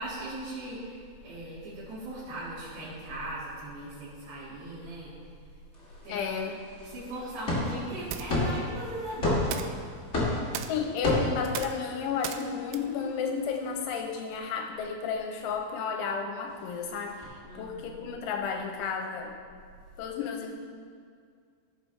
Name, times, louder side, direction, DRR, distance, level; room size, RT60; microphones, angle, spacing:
voice 1, 0.0-5.1 6.0-6.2 6.8-9.5 17.4-18.0, right 1 dB, 60° right, -11 dB, 4.2 m, -39 dB
sound 1, 5.7-14.0 16.5-17.2, left 1 dB, 65° left, 0.7 m, -33 dB
voice 2, 6.1-6.6 10.7-19.4 20.0-20.5, left 6 dB, 85° left, 3 dB, 2.9 m, -32 dB
sound 2, 7.5-14.2, right 9 dB, 85° right, 3.1 m, -42 dB
15.5 x 8.0 x 3.4 m, 2.1 s
omnidirectional pair, 5.8 m